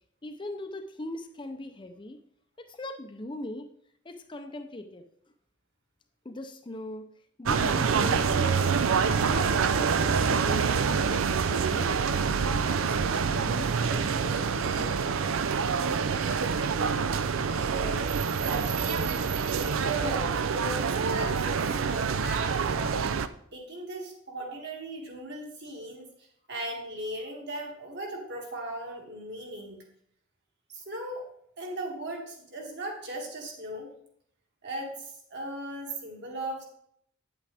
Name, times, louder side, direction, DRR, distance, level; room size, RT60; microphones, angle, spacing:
voice 1, 0.2-2.2 2.6-3.7 4.0-5.1 6.2-7.1 7.4-8.8 9.2-10.8 11.1-12.0 12.6-15.2, left 1 dB, 25° left, 6 dB, 0.6 m, -40 dB
sound 1, 7.5-23.3, right 5 dB, 70° right, 0.5 m, -26 dB
voice 2, 17.7-18.1 18.4-23.1 23.5-26.1 26.5-29.8 30.7-31.3 31.6-33.9 34.6-36.6, right 1 dB, 55° right, 0 dB, 2.4 m, -38 dB
9.4 x 8.3 x 3.5 m, 0.68 s
head